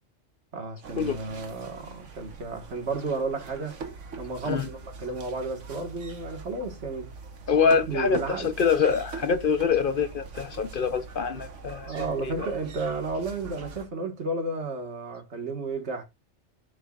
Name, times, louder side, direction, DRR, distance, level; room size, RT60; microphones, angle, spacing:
voice 1, 0.5-3.8 4.2-7.1 7.9-8.6 11.9-16.0, right 3 dB, 65° right, 1.9 m, -32 dB
sound 1, 0.8-13.8, right 4 dB, 85° right, 1.5 m, -43 dB
voice 2, 7.5-11.9 12.2-12.5, left 6 dB, 55° left, 0.8 m, -25 dB
14.5 x 5.2 x 2.4 m
omnidirectional pair, 1.2 m